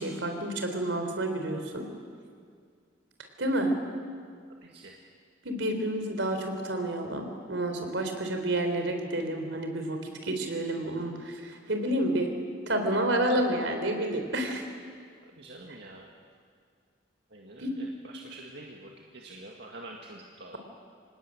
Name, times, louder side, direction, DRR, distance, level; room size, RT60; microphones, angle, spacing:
voice 1, 0.0-1.9 3.4-3.7 5.4-12.3 12.7-14.7 17.6-17.7, right 1 dB, 80° right, 5 dB, 3.8 m, -29 dB
voice 2, 15.4-16.1 17.3-17.6 18.1-20.5, right 2 dB, 60° right, -1 dB, 2.1 m, -46 dB
26.0 x 19.5 x 8.7 m, 2.1 s
head